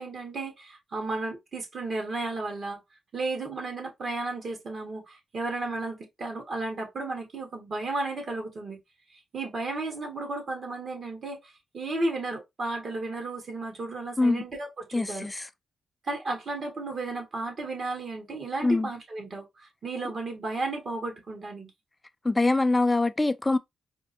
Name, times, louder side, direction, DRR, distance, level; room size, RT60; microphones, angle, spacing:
voice 1, 0.0-2.8 3.1-8.8 9.1-15.3 16.0-21.7, right 2 dB, 60° right, 1.5 m, -33 dB
voice 2, 14.9-15.5 18.6-18.9 22.2-23.6, left 2 dB, 20° left, 0.4 m, -24 dB
4.3 x 2.2 x 2.6 m
cardioid pair, 65°, 0 cm